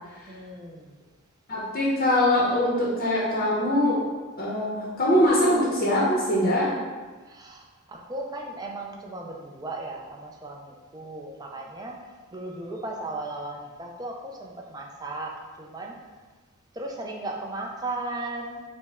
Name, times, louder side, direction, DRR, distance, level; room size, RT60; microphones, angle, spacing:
voice 1, 0.3-0.9 7.3-16.0 16.7-18.7, right 2 dB, 15° right, 0 dB, 0.4 m, -36 dB
voice 2, 1.5-4.0 4.4-6.7, left 1 dB, 40° left, -5 dB, 0.7 m, -22 dB
5.2 x 2.1 x 3.5 m, 1.3 s
head